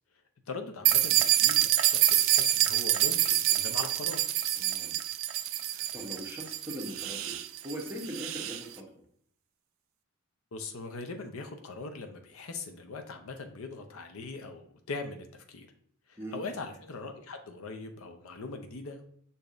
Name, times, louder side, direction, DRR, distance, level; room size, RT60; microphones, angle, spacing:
voice 1, 0.5-4.2 10.5-15.7 16.1-19.1, left 3 dB, 75° left, 5 dB, 0.6 m, -41 dB
sound 1, 0.9-8.6, right 13 dB, 65° right, 0.3 m, -27 dB
voice 2, 4.5-5.0 5.7-7.4 7.6-8.9 16.2-16.4, equal, 10° right, 0 dB, 0.8 m, -41 dB
6.7 x 2.7 x 2.5 m, 0.64 s
head